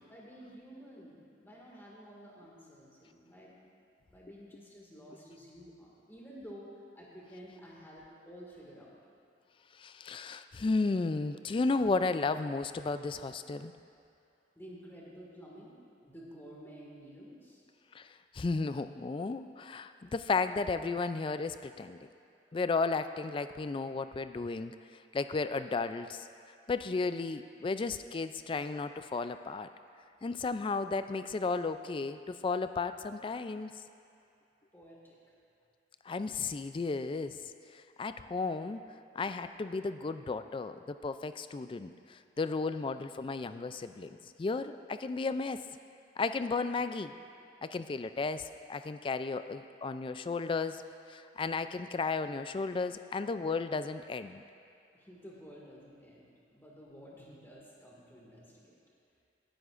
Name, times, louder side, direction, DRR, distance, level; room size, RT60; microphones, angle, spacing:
voice 1, 0.1-3.5 4.1-9.0 14.6-17.6 34.7-35.2 54.9-58.8, equal, 10° left, -5 dB, 1.9 m, -51 dB
voice 2, 9.8-13.7 17.9-18.1 18.3-22.0 22.5-24.8 25.1-26.3 26.7-29.7 30.2-33.7 36.1-37.4 37.7-38.8 39.1-45.6 46.2-47.1 47.6-50.8 51.1-54.4, left 4 dB, 30° left, 11 dB, 0.3 m, -34 dB
17.5 x 10.5 x 2.5 m, 2.6 s
head